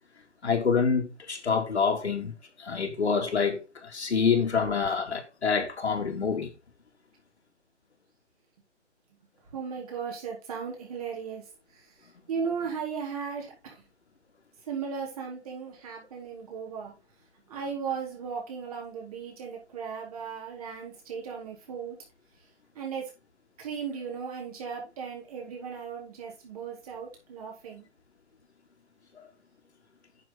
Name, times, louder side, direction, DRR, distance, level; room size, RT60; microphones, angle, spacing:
voice 1, 0.4-2.3 2.6-6.5 29.2-29.3, left 5 dB, 65° left, 3.0 m, -27 dB
voice 2, 9.5-11.4 12.3-13.7 14.7-16.9 17.5-22.0 22.8-23.1 23.6-27.9, right 6 dB, 30° right, 4.2 m, -36 dB
9.6 x 6.8 x 4.1 m
hypercardioid pair, 165°, 35 cm